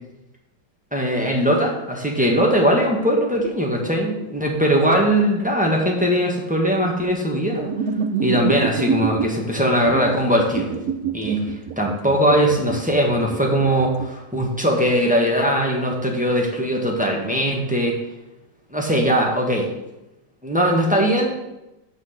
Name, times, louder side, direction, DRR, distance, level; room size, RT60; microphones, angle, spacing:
voice 1, 0.9-7.7 8.2-10.7 11.1-18.0 18.7-19.7 20.4-21.3, equal, 5° right, -1 dB, 1.3 m, -20 dB
sound 1, 7.7-9.3 9.8-14.1, right 7 dB, 65° right, 1.1 m, -26 dB
6.4 x 6.0 x 7.2 m, 0.94 s
omnidirectional pair, 1.8 m